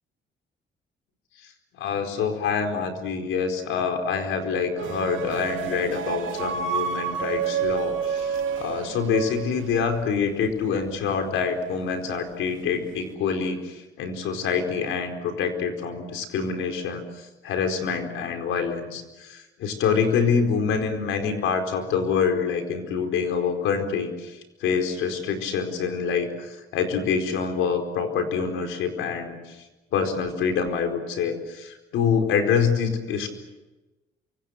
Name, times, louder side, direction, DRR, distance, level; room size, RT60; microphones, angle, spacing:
voice 1, 1.8-17.0 17.4-29.4 29.9-33.3, left 6 dB, 90° left, 5 dB, 4.5 m, -26 dB
sound 1, 4.8-10.1, right 7 dB, 85° right, 2.7 m, -29 dB
28.0 x 25.5 x 6.6 m, 1.1 s
cardioid pair, 90°, 20 cm